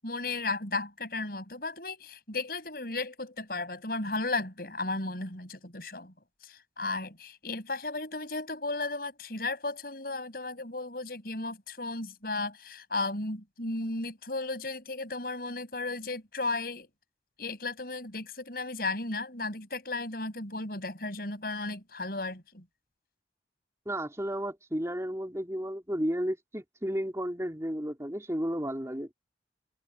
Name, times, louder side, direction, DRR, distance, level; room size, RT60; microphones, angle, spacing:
voice 1, 0.0-6.1 6.4-16.9 17.4-22.6, left 2 dB, 55° left, 7.2 m, -35 dB
voice 2, 23.9-29.1, equal, 15° right, 3.9 m, -33 dB
head